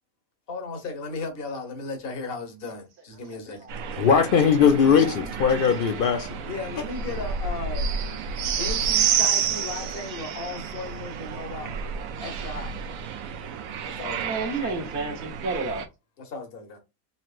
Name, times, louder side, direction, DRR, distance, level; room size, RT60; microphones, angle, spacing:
voice 1, 0.5-3.7 6.4-7.9 8.4-12.7 13.8-14.2 14.5-14.7 16.2-16.8, left 3 dB, 45° left, 1.2 m, -36 dB
sound 1, 3.7-15.9, right 7 dB, 75° right, 1.0 m, -30 dB
voice 2, 4.0-6.4, left 6 dB, 70° left, 0.5 m, -20 dB
voice 3, 13.9-15.9, right 3 dB, 50° right, 1.3 m, -32 dB
4.1 x 3.0 x 2.4 m
omnidirectional pair, 1.5 m